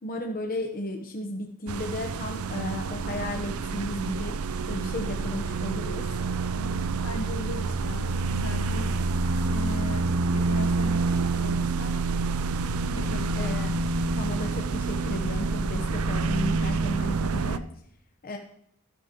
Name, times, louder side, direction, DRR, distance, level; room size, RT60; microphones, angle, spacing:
voice 1, 0.0-4.4 4.7-6.1 13.4-13.7 14.2-17.6 18.2-18.4, left 1 dB, 45° left, 2 dB, 1.0 m, -34 dB
sound 1, 1.7-17.6, right 3 dB, 85° right, 0.5 m, -27 dB
voice 2, 6.5-8.9 9.5-11.9 12.9-13.7, left 1 dB, 85° left, 6 dB, 1.4 m, -38 dB
13.5 x 12.0 x 3.0 m, 0.73 s
head